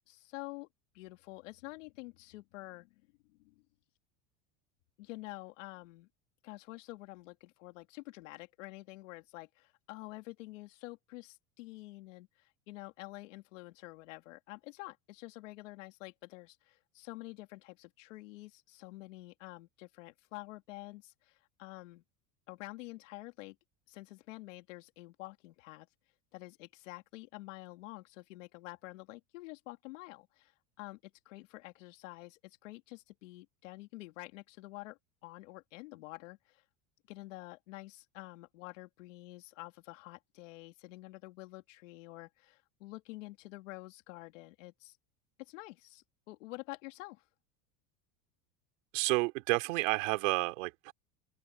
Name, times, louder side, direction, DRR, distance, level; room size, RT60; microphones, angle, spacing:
voice 1, 0.1-0.7 0.9-2.9 3.4-3.6 5.0-6.1 6.4-22.0 22.5-23.6 23.9-25.9 26.3-30.5 30.8-36.6 37.1-45.0 45.5-47.2, left 20 dB, 85° left, 3.1 m, -48 dB
voice 2, 48.9-50.9, right 23 dB, 75° right, 2.9 m, -30 dB
open air
supercardioid pair, 155°, 37 cm